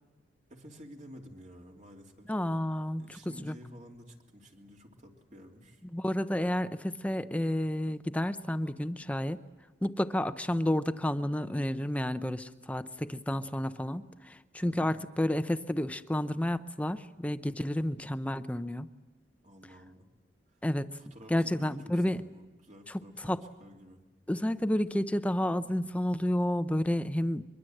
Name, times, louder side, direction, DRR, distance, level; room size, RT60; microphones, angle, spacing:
voice 1, 0.5-2.3 3.0-5.8 14.8-15.1 19.4-20.1 20.5-20.6 21.0-24.0, equal, 45° right, 1 dB, 3.1 m, -51 dB
voice 2, 2.3-3.5 5.9-9.4 9.8-18.9 20.6-20.9 21.3-22.2 23.2-23.4 24.3-27.5, left 1 dB, 10° left, 11 dB, 0.7 m, -30 dB
23.5 x 23.0 x 7.8 m, 1.2 s
head